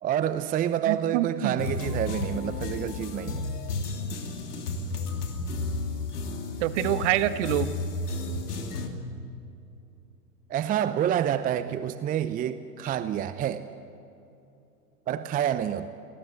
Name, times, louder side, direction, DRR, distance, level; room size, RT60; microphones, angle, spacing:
voice 1, 0.0-3.5 10.5-13.7 15.1-15.9, right 10 dB, 20° right, 13 dB, 0.7 m, -28 dB
voice 2, 0.9-1.6 6.6-7.7 11.7-11.8, right 13 dB, 50° right, 12 dB, 1.4 m, -26 dB
sound 1, 1.6-8.9, left 3 dB, 70° left, 3.1 m, -32 dB
29.5 x 20.0 x 8.0 m, 2.7 s
figure-of-eight pair, 100°, 47 cm